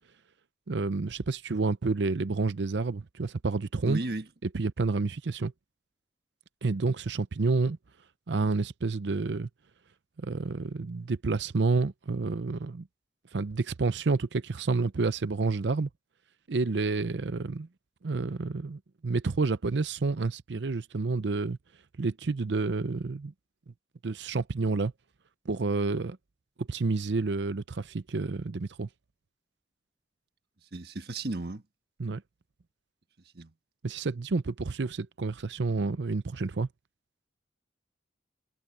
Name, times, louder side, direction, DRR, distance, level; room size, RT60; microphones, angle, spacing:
voice 1, 0.7-4.0 4.4-5.5 6.6-7.8 8.3-9.5 10.2-12.9 13.3-15.9 16.5-17.7 18.0-21.6 22.0-23.3 24.0-24.9 25.5-26.2 26.6-28.9 32.0-32.2 33.8-36.7, right 3 dB, 75° right, 0.6 m, -29 dB
voice 2, 3.8-4.2 30.7-31.6 33.3-33.5, right 2 dB, 60° right, 1.4 m, -34 dB
head